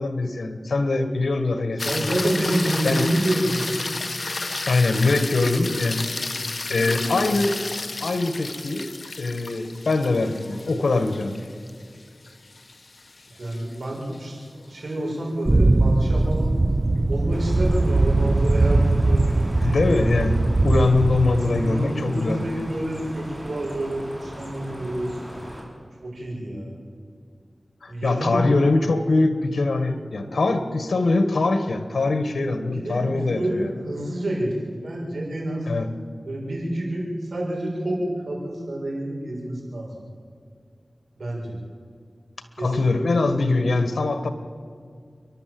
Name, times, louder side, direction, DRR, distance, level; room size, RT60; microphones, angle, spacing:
voice 1, 0.0-2.2 2.8-3.1 4.7-6.0 6.7-7.5 8.0-8.8 9.2-11.4 19.6-22.4 27.8-33.7 35.7-35.9 42.6-44.3, left 3 dB, 80° left, 8 dB, 1.7 m, -22 dB
sound 1, 1.8-14.2 18.7-18.8, left 3 dB, 55° left, 1.1 m, -32 dB
voice 2, 1.8-3.8 6.6-7.4 13.3-16.5 17.1-19.8 21.5-25.3 26.0-26.8 27.9-28.4 32.7-34.5 34.8-35.7 36.2-38.0 38.2-39.9 41.2-41.6 42.6-42.9, right 1 dB, 80° right, -3 dB, 6.9 m, -28 dB
sound 2, 15.4-21.8, right 2 dB, 35° right, 0.8 m, -20 dB
sound 3, 17.3-25.6, equal, 5° right, 5.9 m, -38 dB
29.0 x 12.0 x 7.9 m, 2.2 s
cardioid pair, 45°, 0 cm